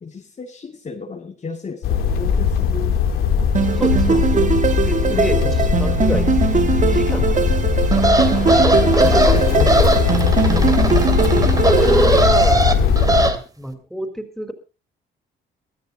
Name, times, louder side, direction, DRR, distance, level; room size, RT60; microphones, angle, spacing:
voice 1, 0.0-3.0 4.1-4.3 5.1-6.2 7.1-7.6 8.3-10.1, left 4 dB, 35° left, 2 dB, 2.1 m, -33 dB
sound 1, 1.8-13.3, left 6 dB, 85° left, 2.9 m, -19 dB
sound 2, 3.5-12.3, right 7 dB, 40° right, 1.4 m, -21 dB
voice 2, 3.7-6.3 6.8-7.3 11.3-14.5, equal, ahead, 6 dB, 4.5 m, -29 dB
sound 3, 7.9-13.4, right 2 dB, 20° right, 2.4 m, -19 dB
23.5 x 14.5 x 2.8 m, 0.32 s
cardioid pair, 90°, 20 cm